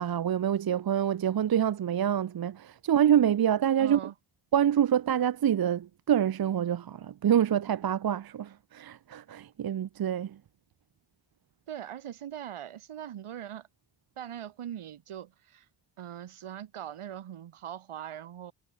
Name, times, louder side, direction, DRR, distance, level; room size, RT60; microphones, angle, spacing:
voice 1, 0.0-4.0 4.5-10.4, right 9 dB, 45° right, 0.8 m, -26 dB
voice 2, 3.8-4.1 11.7-13.7 14.2-15.6 16.0-18.5, right 10 dB, 80° right, 4.7 m, -41 dB
cardioid pair, 90°, 49 cm